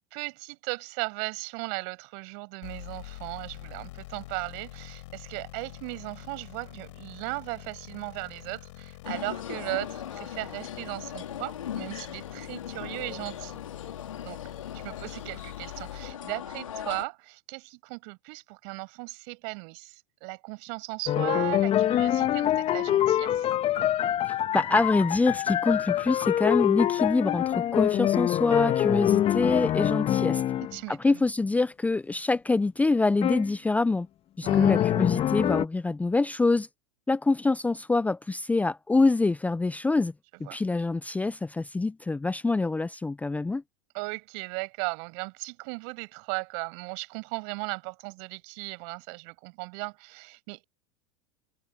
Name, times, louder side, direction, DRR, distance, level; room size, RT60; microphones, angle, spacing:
voice 1, 0.0-13.6 14.2-14.4 14.7-23.5 30.7-31.2 34.4-34.9 40.4-40.6 43.9-50.6, right 40 dB or more, 60° right, 6.2 m, -37 dB
sound 1, 2.6-16.1, left 18 dB, 70° left, 7.7 m, -45 dB
sound 2, 9.0-17.1, left 9 dB, 85° left, 3.5 m, -39 dB
sound 3, 21.1-30.8 33.2-33.5 34.5-35.6, left 11 dB, 35° left, 1.9 m, -25 dB
voice 2, 24.5-30.4 30.9-34.1 34.4-36.7 37.1-40.1 40.4-43.6, left 3 dB, 10° left, 0.7 m, -25 dB
hypercardioid pair, 100°, 16 cm